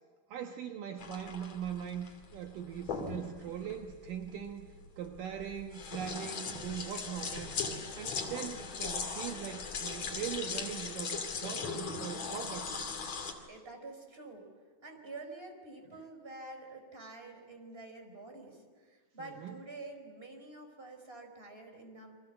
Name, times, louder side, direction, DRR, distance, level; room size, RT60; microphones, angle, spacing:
voice 1, 0.3-4.7 5.0-7.5 8.0-12.8 19.2-19.6, right 9 dB, 70° right, 4 dB, 2.7 m, -41 dB
sound 1, 1.0-13.3, left 5 dB, 50° left, 3.6 m, -39 dB
voice 2, 13.5-14.5 14.8-22.1, right 2 dB, 15° right, 4 dB, 4.4 m, -48 dB
29.5 x 24.5 x 7.9 m, 1.5 s
omnidirectional pair, 4.3 m